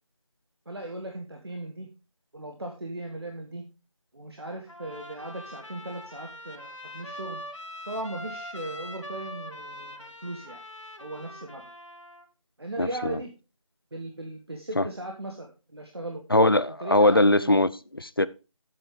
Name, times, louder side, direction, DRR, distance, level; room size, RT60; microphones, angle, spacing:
voice 1, 0.7-1.9 2.3-3.6 4.1-7.4 7.8-10.6 11.0-11.6 12.6-13.3 13.9-16.2 16.8-17.6, right 1 dB, 50° right, 1.3 m, -37 dB
Trumpet, 4.7-12.3, left 1 dB, 65° left, 1.8 m, -42 dB
voice 2, 12.8-13.2 14.8-14.9 16.3-18.3, left 1 dB, 45° left, 0.4 m, -21 dB
9.5 x 8.0 x 3.5 m
figure-of-eight pair, 175°, 17 cm